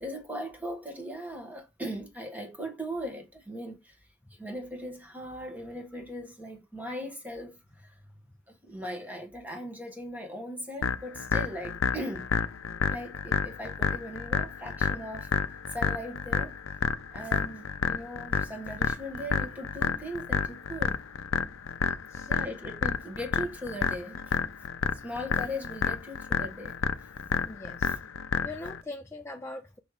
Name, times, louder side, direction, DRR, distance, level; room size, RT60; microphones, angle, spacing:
voice 1, 0.0-4.0 4.3-8.0 8.5-12.3 12.9-15.3 15.7-16.6 17.1-21.0 22.3-24.4 24.9-26.8 27.9-28.0, equal, 10° right, 1.4 m, -39 dB
sound 1, 10.8-28.8, left 6 dB, 90° left, 0.5 m, -30 dB
voice 2, 27.5-27.9 28.4-29.8, left 2 dB, 10° left, 0.4 m, -41 dB
6.0 x 3.3 x 4.8 m
head